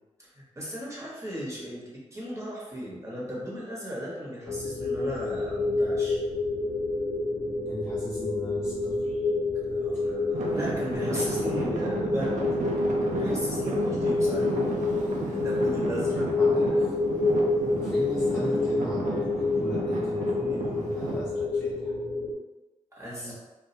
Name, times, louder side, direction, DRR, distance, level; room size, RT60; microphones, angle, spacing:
voice 1, 0.3-6.2 9.7-12.5 13.0-14.5 15.2-16.6 22.9-23.3, equal, 20° right, -6 dB, 1.0 m, -36 dB
sound 1, 4.4-22.3, left 3 dB, 85° left, 0.5 m, -28 dB
voice 2, 7.6-9.2 16.1-16.9 17.7-22.0, equal, 15° left, -8 dB, 0.7 m, -39 dB
Traffic noise roadway noise / Engine, 10.3-21.2, right 2 dB, 70° right, 0.5 m, -33 dB
2.2 x 2.1 x 2.7 m, 1.1 s
cardioid pair, 50°, 13 cm